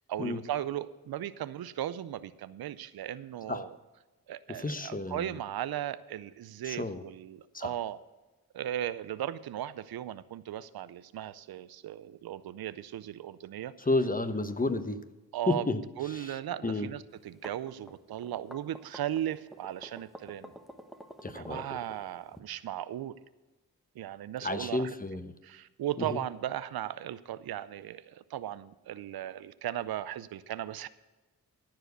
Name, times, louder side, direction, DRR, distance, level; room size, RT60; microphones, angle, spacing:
voice 1, 0.0-3.7 4.3-8.0 8.5-13.7 15.3-15.6 16.0-20.5 21.4-23.2 24.0-24.9 25.4-30.9, right 12 dB, 80° right, 15 dB, 0.6 m, -37 dB
voice 2, 4.5-5.3 6.6-7.0 7.5-7.7 13.8-15.0 15.5-15.8 16.1-16.3 16.6-16.9 21.2-21.8 24.4-25.3 26.0-26.2, left 2 dB, 25° left, 10 dB, 1.0 m, -31 dB
sound 1, 17.2-22.4, equal, ahead, 1.2 m, -49 dB
14.5 x 4.9 x 8.0 m, 1.2 s
cardioid pair, 50°, 36 cm